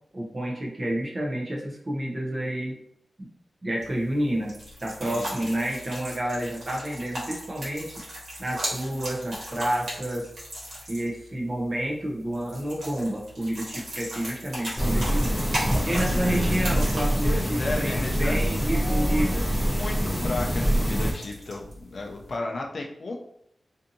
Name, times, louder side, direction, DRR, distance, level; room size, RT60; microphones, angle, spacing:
voice 1, 0.1-2.8 3.2-3.3 3.6-8.0 8.4-10.3 10.9-15.4 15.8-17.4 17.8-19.4, right 1 dB, 30° right, -2 dB, 0.6 m, -29 dB
sound 1, 3.8-22.3, equal, 85° right, 1.2 m, -38 dB
voice 2, 5.0-5.5 15.8-16.6 17.2-19.3 19.6-23.2, left 2 dB, 55° left, 0 dB, 0.4 m, -34 dB
sound 2, 14.8-21.1, equal, ahead, 0.8 m, -25 dB
2.6 x 2.5 x 2.6 m, 0.74 s
wide cardioid pair, 140°, 0 cm